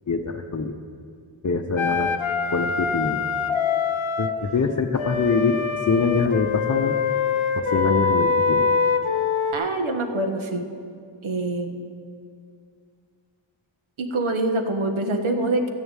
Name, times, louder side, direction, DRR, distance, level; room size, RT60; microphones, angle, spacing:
voice 1, 0.1-0.7 1.4-2.1 2.5-3.2 4.2-7.0 7.5-8.6, left 4 dB, 35° left, 1 dB, 0.7 m, -24 dB
Wind instrument woodwind instrument, 1.8-4.4 5.0-9.5, left 5 dB, 75° left, 0.9 m, -24 dB
voice 2, 9.5-10.6 11.2-11.8 14.0-15.7, right 2 dB, 75° right, 6 dB, 1.4 m, -25 dB
13.5 x 6.8 x 9.0 m, 2.3 s
wide cardioid pair, 90°, 49 cm